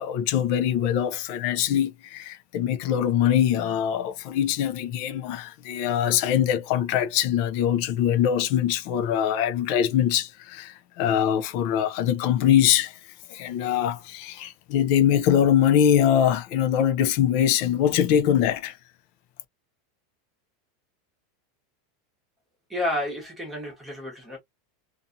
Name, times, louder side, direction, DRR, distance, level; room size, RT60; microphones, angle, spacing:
voice 1, 0.0-13.0 13.3-18.8, left 10 dB, 45° left, 0.4 m, -23 dB
voice 2, 22.7-24.4, left 1 dB, 5° right, 1.0 m, -30 dB
2.7 x 2.4 x 2.5 m
supercardioid pair, 175°, 0 cm